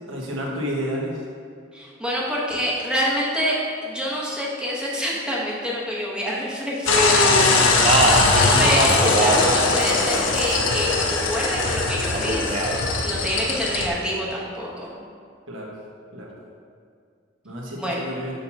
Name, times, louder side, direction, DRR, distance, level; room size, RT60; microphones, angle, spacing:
voice 1, 0.1-1.1 7.4-8.0 13.5-13.6 15.5-15.7 16.1-16.3 17.4-18.3, equal, 80° right, -3 dB, 1.2 m, -31 dB
voice 2, 1.7-8.1 8.6-12.7 13.0-14.9 17.8-18.1, equal, 5° right, -5 dB, 0.9 m, -27 dB
sound 1, 6.9-13.9, left 3 dB, 70° left, 0.6 m, -20 dB
Speech, 7.6-9.5 9.8-10.7 12.1-12.8, right 2 dB, 35° right, 0.5 m, -23 dB
6.5 x 2.8 x 5.7 m, 2.3 s
head